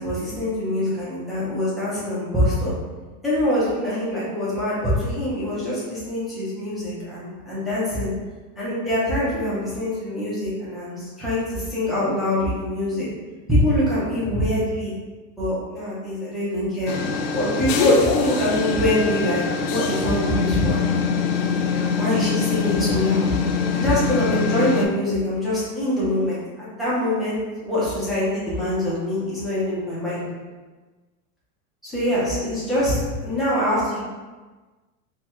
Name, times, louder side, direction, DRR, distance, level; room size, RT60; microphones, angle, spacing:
voice 1, 0.0-2.7 3.2-8.1 8.6-13.1 13.5-14.9 15.4-17.0 17.3-20.8 22.0-23.3 23.7-30.2 31.8-34.0, left 1 dB, ahead, -11 dB, 0.3 m, -24 dB
sound 1, 16.9-24.9, left 5 dB, 60° left, 0.6 m, -23 dB
4.3 x 2.0 x 3.4 m, 1.3 s
supercardioid pair, 150°, 44 cm